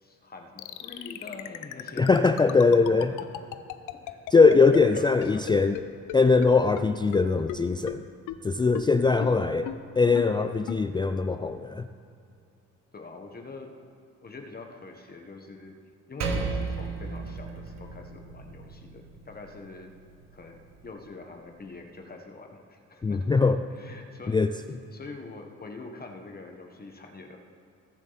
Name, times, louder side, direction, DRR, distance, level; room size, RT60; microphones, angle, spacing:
voice 1, 0.0-2.2 3.9-4.2 4.7-5.4 9.0-9.6 12.9-13.8 14.2-15.8 16.1-19.9 20.3-23.4 23.7-24.4 24.9-27.4, left 3 dB, 30° left, 3 dB, 1.3 m, -44 dB
sound 1, 0.6-5.8 6.1-6.2 6.4-6.5 6.8-6.9 7.1-7.2 7.5-7.6 7.9-8.0 8.3-8.4 8.7-8.8 9.2-9.3 9.7-9.8 10.2-10.3 10.7-10.8, left 14 dB, 90° left, 0.6 m, -35 dB
voice 2, 2.0-3.1 4.3-5.8 6.1-8.0 8.4-9.7 10.0-11.9 23.0-23.6 24.3-24.5, left 4 dB, 15° left, 8 dB, 0.3 m, -21 dB
Percussion, 16.2-21.0, right 4 dB, 60° right, 1.5 m, -35 dB
21.0 x 7.3 x 4.1 m, 2.6 s
cardioid pair, 90°, 30 cm